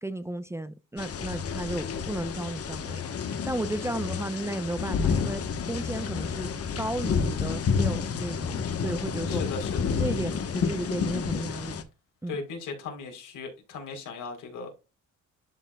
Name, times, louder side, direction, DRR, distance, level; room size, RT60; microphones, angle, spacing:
voice 1, 0.0-3.0 3.5-5.4 5.7-6.5 6.8-9.4 10.0-11.8 12.2-12.4, right 1 dB, 10° right, 0.5 m, -33 dB
sound 1, 1.0-11.8, left 6 dB, 50° left, 1.1 m, -30 dB
voice 2, 9.3-10.0 12.3-14.7, left 4 dB, 85° left, 3.4 m, -37 dB
11.5 x 4.4 x 2.2 m
cardioid pair, 90°, 30 cm